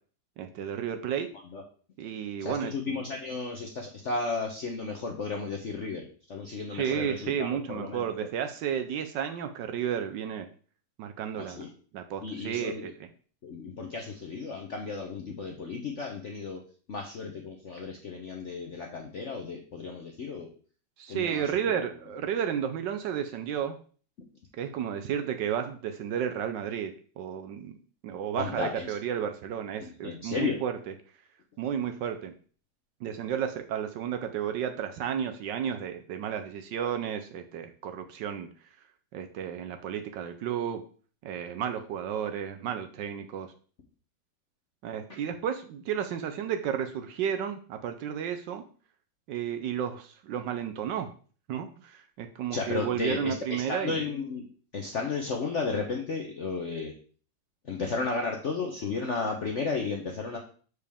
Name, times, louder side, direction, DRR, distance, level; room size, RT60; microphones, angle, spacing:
voice 1, 0.4-1.3 2.0-2.7 6.7-10.5 11.0-11.6 11.9-12.9 21.0-23.8 24.6-27.8 28.0-30.7 31.6-32.3 33.0-38.5 39.1-40.8 41.2-43.5 44.8-48.6 49.3-51.1 51.5-54.0, right 8 dB, 75° right, 7 dB, 1.1 m, -32 dB
voice 2, 2.4-8.3 11.4-11.7 12.2-12.9 13.4-16.6 16.9-20.5 21.1-21.8 28.3-28.9 29.8-30.6 52.5-54.5 54.7-56.9 57.6-60.4, left 4 dB, 65° left, 2 dB, 0.7 m, -34 dB
6.8 x 4.9 x 3.4 m, 0.42 s
omnidirectional pair, 2.2 m